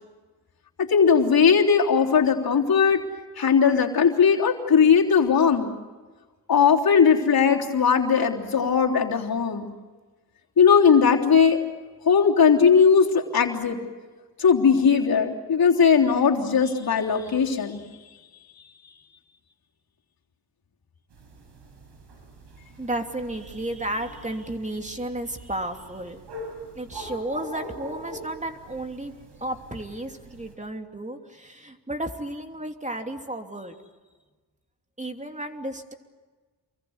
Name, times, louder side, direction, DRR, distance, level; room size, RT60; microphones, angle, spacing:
voice 1, 0.8-3.0 3.4-5.7 6.5-9.7 10.6-11.6 12.0-13.8 14.4-17.8, left 6 dB, 60° left, -1 dB, 3.6 m, -19 dB
sound 1, 21.1-30.5, right 1 dB, 80° right, 7.1 m, -43 dB
voice 2, 22.8-26.2 26.7-29.1 29.4-33.8 35.0-35.9, right 1 dB, 20° right, 5 dB, 2.9 m, -33 dB
28.5 x 23.5 x 8.1 m, 1.4 s
cardioid pair, 55°, 40 cm